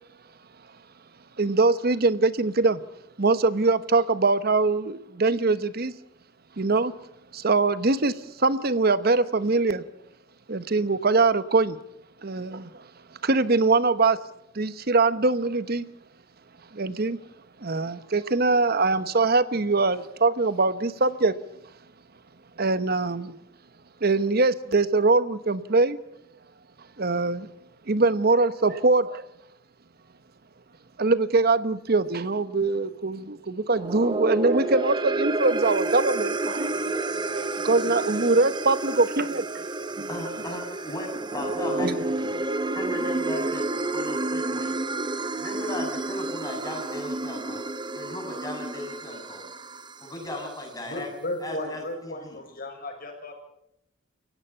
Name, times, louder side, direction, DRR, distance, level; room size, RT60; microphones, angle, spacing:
voice 1, 1.4-2.8 3.2-5.9 6.6-6.9 7.3-9.8 10.5-11.8 12.2-12.9 13.2-14.2 14.5-15.9 16.7-17.2 17.6-21.4 22.6-23.4 24.0-26.0 27.0-27.5 27.9-29.3 31.0-39.4 40.0-40.6 41.5-42.0 42.6-42.7 43.4-43.5, right 3 dB, 55° right, 14 dB, 1.1 m, -23 dB
sound 1, 33.7-50.2, right 2 dB, 25° right, 0.8 m, -30 dB
voice 2, 40.1-44.8 45.3-47.6 47.9-49.4 50.0-51.1 51.4-52.4, left 1 dB, 20° left, 2 dB, 6.9 m, -36 dB
voice 3, 50.8-53.3, left 1 dB, 50° left, 3 dB, 6.2 m, -35 dB
29.0 x 16.5 x 5.7 m, 0.78 s
head